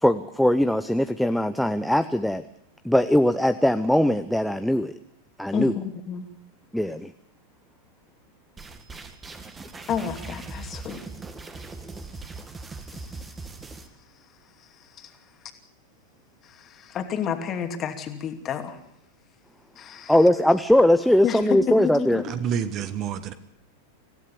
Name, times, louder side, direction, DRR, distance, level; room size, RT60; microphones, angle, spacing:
voice 1, 0.0-2.4 2.8-4.9 5.4-5.7 6.7-7.1 20.1-22.2, left 1 dB, ahead, 10 dB, 0.8 m, -20 dB
voice 2, 5.5-6.3 9.9-11.0 12.9-13.2 14.8-15.1 16.4-18.8 19.8-20.2 21.2-22.3, left 7 dB, 30° left, 6 dB, 2.7 m, -30 dB
sound 1, 8.6-13.9, right 3 dB, 15° right, 2.2 m, -40 dB
voice 3, 22.3-23.3, right 8 dB, 35° right, 12 dB, 1.5 m, -28 dB
25.5 x 16.5 x 7.1 m, 0.77 s
figure-of-eight pair, 90°, 0 cm